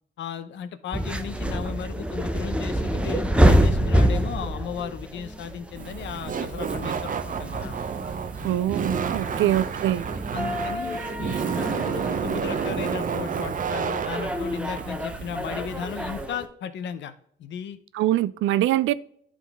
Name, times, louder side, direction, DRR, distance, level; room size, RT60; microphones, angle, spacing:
voice 1, 0.2-7.8 8.4-8.6 9.3-9.6 10.3-17.1 17.4-17.8, left 8 dB, 70° left, 0.7 m, -35 dB
sound 1, 0.9-16.5, right 1 dB, 5° right, 0.7 m, -27 dB
Laughter, 5.8-16.3, right 6 dB, 40° right, 0.7 m, -30 dB
voice 2, 8.4-10.1 17.9-18.9, right 13 dB, 80° right, 0.4 m, -23 dB
11.0 x 3.8 x 3.5 m
cardioid pair, 90°, 20 cm